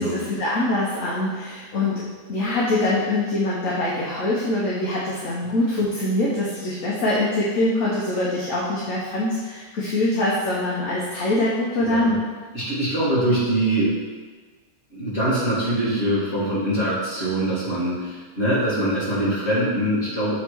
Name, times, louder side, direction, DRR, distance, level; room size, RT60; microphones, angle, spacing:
voice 1, 0.0-12.2, left 1 dB, 60° left, -6 dB, 1.3 m, -24 dB
voice 2, 11.8-12.1 12.5-14.0 14.9-20.3, right 1 dB, 45° left, -8 dB, 2.4 m, -23 dB
7.2 x 3.3 x 4.6 m, 1.4 s
omnidirectional pair, 1.6 m